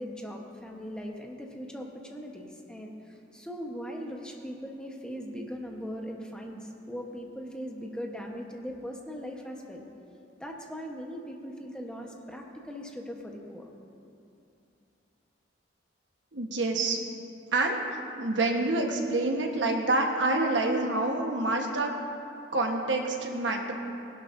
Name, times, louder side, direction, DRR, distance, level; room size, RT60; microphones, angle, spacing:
voice 1, 0.0-9.8 10.4-13.7, equal, 5° left, 0 dB, 1.1 m, -39 dB
voice 2, 16.3-17.0 17.5-21.9 22.5-23.7, right 2 dB, 75° right, 2 dB, 1.2 m, -27 dB
20.5 x 11.5 x 2.7 m, 2.7 s
head